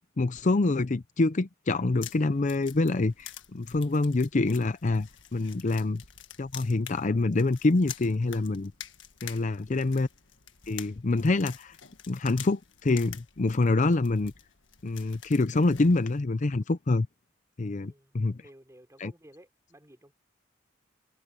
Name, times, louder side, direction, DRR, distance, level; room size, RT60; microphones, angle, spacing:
voice 1, 0.2-6.0 6.4-8.7 9.2-10.1 10.7-11.8 12.1-14.3 14.8-17.1 17.6-18.4 19.0-19.1, left 2 dB, 40° left, 0.6 m, -26 dB
sound 1, 1.7-16.2, left 11 dB, 85° left, 1.6 m, -47 dB
voice 2, 17.7-20.1, right 1 dB, 15° right, 4.4 m, -56 dB
head